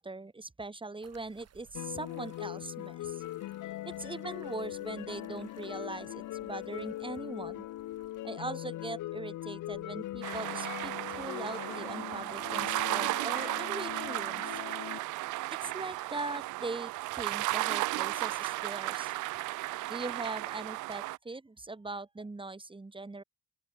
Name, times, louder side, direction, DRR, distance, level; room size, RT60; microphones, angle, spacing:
voice 1, 0.0-3.2 3.9-7.7 8.2-14.6 15.5-19.1 19.9-23.2, right 3 dB, 15° right, 2.1 m, -41 dB
sound 1, 1.0-12.1, right 8 dB, 55° right, 7.0 m, -64 dB
sound 2, 1.7-15.0, left 15 dB, 80° left, 1.4 m, -41 dB
sound 3, 10.2-21.2, right 19 dB, 80° right, 0.5 m, -34 dB
open air
cardioid pair, 90°, 30 cm